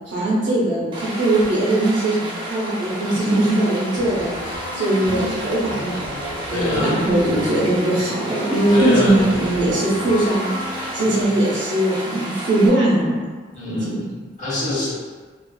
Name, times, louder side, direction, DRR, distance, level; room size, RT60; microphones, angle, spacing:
voice 1, 0.1-6.1 6.5-10.5 10.9-13.3 13.6-14.0, right 1 dB, 65° right, -6 dB, 0.7 m, -20 dB
Stream, 0.9-12.7, right 1 dB, 25° right, 0.4 m, -32 dB
sound 1, 4.0-11.3, left 2 dB, 75° left, 0.4 m, -34 dB
voice 2, 5.0-5.4 6.5-7.0 8.7-9.3 13.5-14.9, left 2 dB, 40° left, -8 dB, 0.8 m, -24 dB
2.4 x 2.3 x 2.3 m, 1.4 s
head